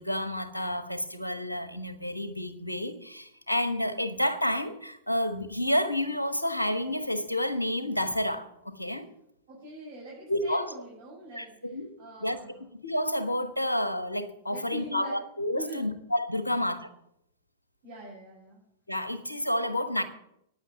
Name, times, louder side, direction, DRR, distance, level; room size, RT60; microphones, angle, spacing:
voice 1, 0.0-9.1 10.3-10.7 11.3-11.9 12.2-12.4 12.8-16.8 18.9-20.0, left 1 dB, 90° left, 10 dB, 1.3 m, -30 dB
voice 2, 9.5-12.6 14.5-15.1 15.5-15.9 16.5-16.6 17.8-18.6, equal, 55° right, -5 dB, 5.8 m, -43 dB
9.4 x 8.9 x 9.0 m, 0.78 s
figure-of-eight pair, 100°, 0 cm